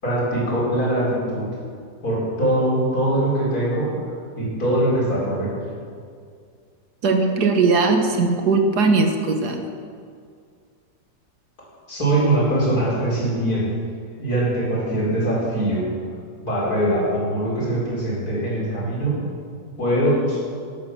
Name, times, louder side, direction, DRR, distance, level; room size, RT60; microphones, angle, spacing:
voice 1, 0.0-1.5 2.0-3.9 4.4-5.6 11.9-13.7 14.2-15.9 16.4-19.1 19.8-20.4, right 1 dB, 55° left, -7 dB, 5.3 m, -22 dB
voice 2, 7.0-9.6, right 4 dB, 65° right, 4 dB, 1.8 m, -19 dB
12.5 x 12.0 x 6.2 m, 2.2 s
omnidirectional pair, 1.9 m